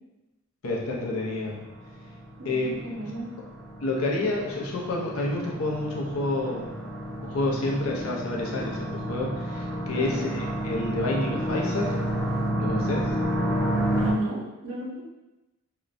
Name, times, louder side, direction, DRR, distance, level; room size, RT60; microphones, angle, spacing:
voice 1, 0.6-1.6 2.4-2.7 3.8-6.7 7.2-12.0 12.6-13.1, left 2 dB, 85° left, -2 dB, 0.6 m, -29 dB
sound 1, 1.1-14.1, right 1 dB, ahead, 0.5 m, -31 dB
voice 2, 2.4-3.3 9.9-10.3 14.0-15.0, equal, 70° right, -3 dB, 0.6 m, -34 dB
2.9 x 2.1 x 2.4 m, 1.0 s
head